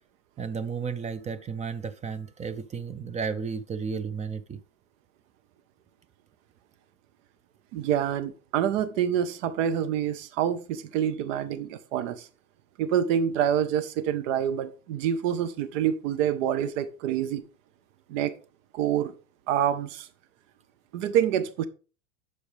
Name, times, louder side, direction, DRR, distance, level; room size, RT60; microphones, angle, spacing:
voice 1, 0.4-4.6, right 6 dB, 15° right, 0.6 m, -33 dB
voice 2, 7.7-12.2 12.8-17.4 18.1-18.3 18.7-19.1 19.5-20.1 20.9-21.7, right 9 dB, 70° right, 1.1 m, -27 dB
12.0 x 5.0 x 3.4 m
supercardioid pair, 125°, 40 cm